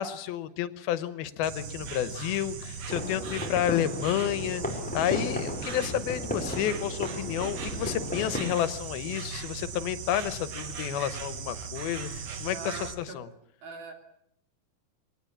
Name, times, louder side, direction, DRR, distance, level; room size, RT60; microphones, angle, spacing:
voice 1, 0.0-4.6 4.9-13.3, left 11 dB, 85° left, 14 dB, 3.0 m, -30 dB
Insect, 1.4-12.9, right 5 dB, 55° right, 2.5 m, -38 dB
sound 1, 2.9-8.5, left 1 dB, ahead, 4.4 m, -35 dB
voice 2, 12.5-13.2 13.6-13.9, right 4 dB, 75° right, 4 dB, 4.9 m, -41 dB
23.5 x 19.0 x 8.6 m, 0.73 s
omnidirectional pair, 4.2 m